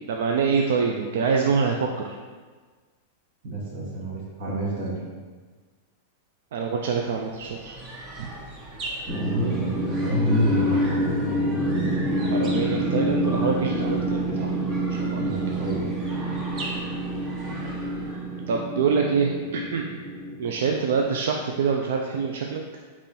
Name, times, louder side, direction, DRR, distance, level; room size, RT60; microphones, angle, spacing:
voice 1, 0.1-2.2 6.5-7.8 8.2-8.3 12.3-14.5 15.0-15.2 18.5-19.9 20.4-22.6, right 5 dB, 75° right, 1 dB, 0.3 m, -25 dB
voice 2, 3.4-5.0 9.1-11.1 15.2-16.4, equal, 55° right, -5 dB, 1.2 m, -28 dB
sound 1, 6.9-18.4, right 1 dB, 35° right, 0.8 m, -40 dB
sound 2, 9.1-21.2, right 1 dB, 5° left, 0.6 m, -27 dB
3.7 x 3.0 x 4.1 m, 1.4 s
hypercardioid pair, 130°, 0 cm